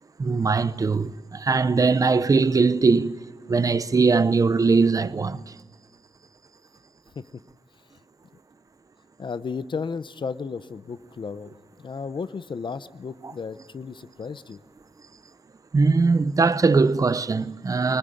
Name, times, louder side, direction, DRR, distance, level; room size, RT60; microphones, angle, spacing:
voice 1, 0.2-3.2 3.5-5.4 15.7-18.0, right 4 dB, 30° right, 0.7 m, -20 dB
voice 2, 9.2-11.5 11.8-14.6, left 5 dB, 45° left, 0.7 m, -33 dB
24.0 x 20.0 x 9.0 m
wide cardioid pair, 160°, 11 cm